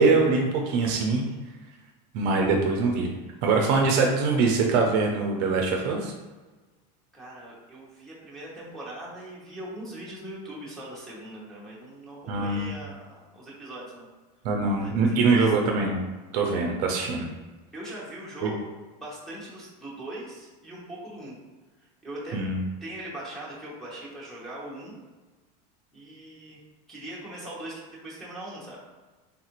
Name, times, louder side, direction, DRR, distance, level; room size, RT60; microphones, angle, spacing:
voice 1, 0.0-1.3 2.1-3.1 3.4-6.1 12.3-12.7 14.4-16.0 16.3-17.3 18.4-18.5 22.3-22.6, right 4 dB, 50° right, 1 dB, 0.5 m, -23 dB
voice 2, 7.1-14.1 14.8-14.9 15.2-15.5 17.7-18.7 19.0-21.4 22.0-22.4 22.8-25.0 25.9-26.6 26.9-28.8, right 1 dB, ahead, -8 dB, 0.7 m, -40 dB
3.4 x 2.4 x 2.9 m, 1.2 s
supercardioid pair, 160°, 21 cm